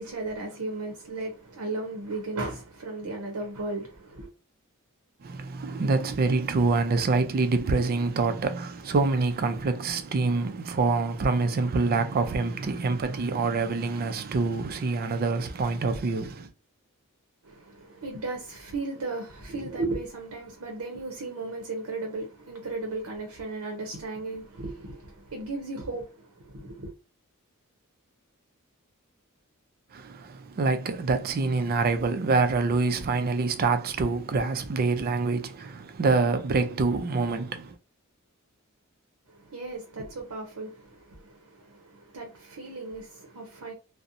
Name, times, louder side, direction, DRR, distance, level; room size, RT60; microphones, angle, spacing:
voice 1, 0.0-4.3 17.4-26.9 39.3-43.7, right 2 dB, 85° right, 0.7 m, -35 dB
voice 2, 5.2-16.5 29.9-37.7, right 3 dB, 45° right, 0.4 m, -26 dB
2.7 x 2.0 x 2.5 m
head